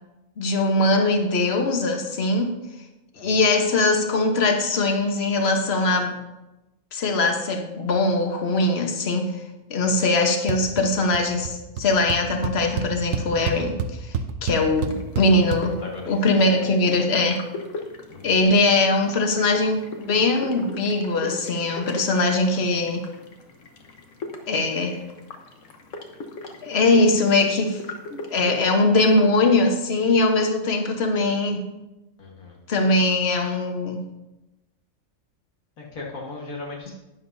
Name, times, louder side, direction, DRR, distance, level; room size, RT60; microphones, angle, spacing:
voice 1, 0.4-2.6 3.2-6.2 6.9-9.3 9.7-14.1 14.4-15.8 16.1-17.4 18.2-23.1 24.5-25.0 26.6-27.8 28.1-31.7 32.7-34.1, left 2 dB, 50° left, 4 dB, 1.3 m, -21 dB
voice 2, 9.8-10.1 15.6-16.5 18.1-18.5 32.2-32.6 35.8-36.9, left 3 dB, 85° left, -2 dB, 2.0 m, -38 dB
sound 1, 10.5-10.9 11.1-11.5 11.8-11.9 12.1-15.6, right 6 dB, 75° right, 1.1 m, -28 dB
sound 2, 14.7-28.6, left 2 dB, 70° left, 1.4 m, -40 dB
11.5 x 10.0 x 2.7 m, 1.0 s
omnidirectional pair, 1.4 m